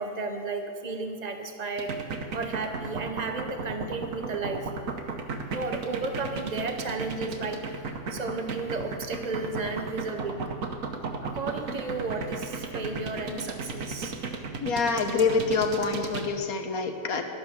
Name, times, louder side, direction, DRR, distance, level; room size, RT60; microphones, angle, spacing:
voice 1, 0.0-1.9 2.3-4.7 5.5-7.6 8.1-10.5 11.2-14.2, right 3 dB, 75° right, 5 dB, 0.3 m, -33 dB
sound 1, 1.8-16.3, right 4 dB, 55° right, 1.2 m, -34 dB
voice 2, 14.6-17.2, left 4 dB, 60° left, 5 dB, 1.4 m, -26 dB
11.0 x 8.7 x 7.2 m, 2.4 s
omnidirectional pair, 1.9 m